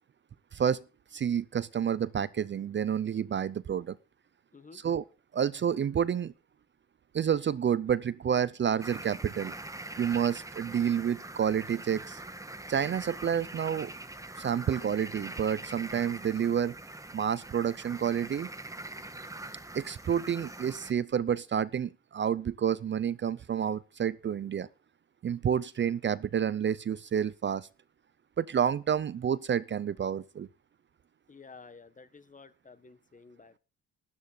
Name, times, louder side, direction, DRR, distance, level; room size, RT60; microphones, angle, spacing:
voice 1, 0.5-0.8 1.1-4.0 4.7-5.0 5.3-6.3 7.1-9.5 10.0-12.2 12.7-13.9 14.4-16.7 17.1-18.5 19.7-24.7 25.2-27.7 28.4-30.5, right 8 dB, 40° right, 0.6 m, -29 dB
voice 2, 4.5-4.9 31.3-33.6, left 4 dB, 25° left, 1.3 m, -52 dB
sound 1, 8.8-20.9, right 2 dB, 10° right, 1.6 m, -43 dB
13.0 x 13.0 x 3.9 m
cardioid pair, 90°, 30 cm